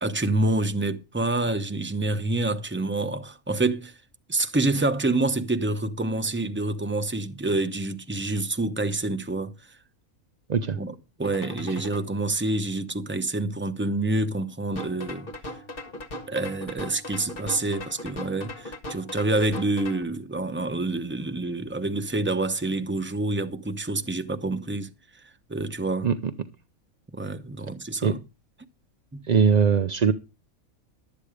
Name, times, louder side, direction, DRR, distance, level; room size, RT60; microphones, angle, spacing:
voice 1, 0.0-3.9 4.3-9.5 10.8-15.3 16.3-24.9 25.5-26.1 27.1-28.2, right 2 dB, 10° right, 0.7 m, -27 dB
sound 1, 11.2-12.0 14.7-20.0, left 1 dB, 40° left, 1.7 m, -38 dB
voice 2, 29.3-30.1, right 6 dB, 50° right, 0.5 m, -20 dB
12.0 x 8.1 x 4.9 m
omnidirectional pair, 1.5 m